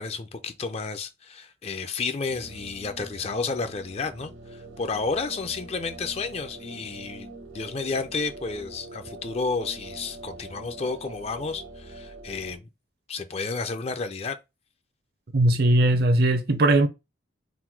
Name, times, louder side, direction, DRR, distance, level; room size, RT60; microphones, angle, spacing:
voice 1, 0.0-12.7 13.1-14.4, left 4 dB, 35° left, 0.4 m, -31 dB
sound 1, 2.3-12.6, right 2 dB, 85° right, 1.3 m, -44 dB
voice 2, 15.3-16.9, right 1 dB, 55° right, 0.6 m, -19 dB
3.8 x 2.2 x 4.5 m
head